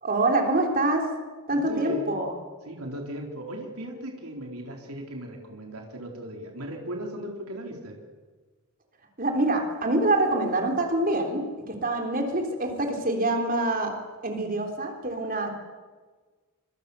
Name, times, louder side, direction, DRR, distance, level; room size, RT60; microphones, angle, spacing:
voice 1, 0.0-1.1 1.5-2.3 9.2-13.9 14.2-15.5, right 2 dB, 40° right, 3 dB, 3.7 m, -25 dB
voice 2, 1.5-2.1 2.6-8.0, equal, 80° right, 1 dB, 4.0 m, -37 dB
25.5 x 24.0 x 6.9 m, 1.4 s
head